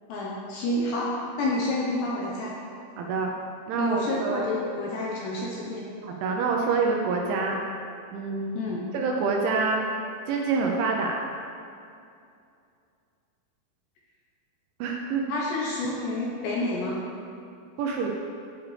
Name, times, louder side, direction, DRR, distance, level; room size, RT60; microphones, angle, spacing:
voice 1, 0.1-1.1 1.4-2.6 3.8-5.9 8.5-8.9 15.3-17.0, left 2 dB, 75° left, -4 dB, 2.7 m, -29 dB
voice 2, 3.0-3.3 3.7-4.5 6.0-7.6 8.1-8.6 8.9-9.8 10.3-11.2 14.8-15.2 17.8-18.1, right 4 dB, 80° right, 0 dB, 2.8 m, -26 dB
15.5 x 8.1 x 3.3 m, 2.5 s
omnidirectional pair, 6.0 m